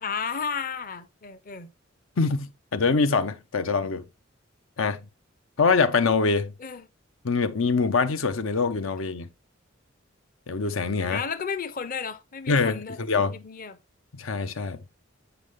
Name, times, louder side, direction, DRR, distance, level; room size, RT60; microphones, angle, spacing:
voice 1, 0.0-1.7 6.6-6.9 11.1-13.0 13.3-13.8, left 6 dB, 45° left, 0.7 m, -33 dB
voice 2, 2.2-4.0 4.8-5.0 5.6-6.5 7.2-9.3 10.5-11.2 12.5-13.4 14.1-14.8, left 4 dB, 80° left, 0.7 m, -24 dB
8.0 x 5.3 x 3.5 m
head